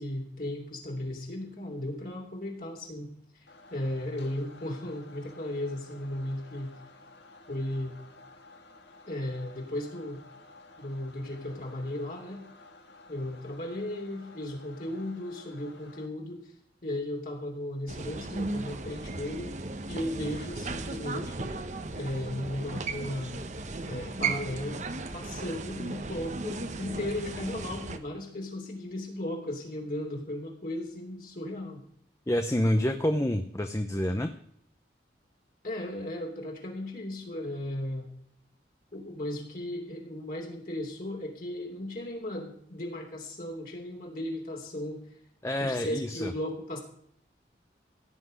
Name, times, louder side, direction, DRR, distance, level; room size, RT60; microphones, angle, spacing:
voice 1, 0.0-6.7 7.5-7.9 9.1-10.2 10.8-12.4 13.1-16.5 16.8-19.5 19.9-21.5 21.9-23.3 23.9-24.8 25.1-31.8 35.6-38.1 38.9-45.0 45.6-46.8, left 1 dB, 50° left, 0 dB, 3.1 m, -36 dB
sound 1, 3.5-16.1, left 2 dB, 75° left, 1.9 m, -53 dB
sound 2, 17.9-28.0, right 3 dB, 40° right, 1.0 m, -36 dB
voice 2, 32.3-34.3 45.4-46.3, left 1 dB, 15° left, 7 dB, 0.7 m, -28 dB
16.5 x 5.9 x 9.6 m, 0.66 s
head